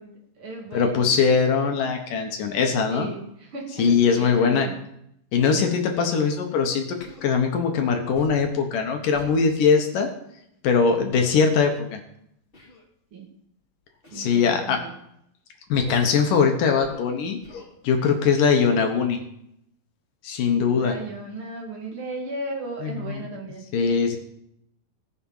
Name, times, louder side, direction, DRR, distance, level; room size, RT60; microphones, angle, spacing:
voice 1, 0.0-1.1 2.9-4.8 13.1-13.3 14.1-15.0 20.7-23.6, right 3 dB, 40° right, 1 dB, 2.6 m, -36 dB
voice 2, 0.7-3.1 3.8-4.7 5.3-6.8 7.2-10.1 10.6-12.0 14.1-14.8 15.7-17.4 17.8-19.2 20.2-21.0 22.8-23.2 23.7-24.2, left 5 dB, 65° left, 4 dB, 2.7 m, -21 dB
Human voice, 7.0-7.3 8.1-8.5 9.1-9.4 11.1-11.3 12.5-12.8 14.0-14.3 15.7-16.1 16.8-17.1 17.4-17.7, left 2 dB, 15° left, 2.1 m, -43 dB
18.0 x 7.1 x 5.6 m, 0.75 s
omnidirectional pair, 4.4 m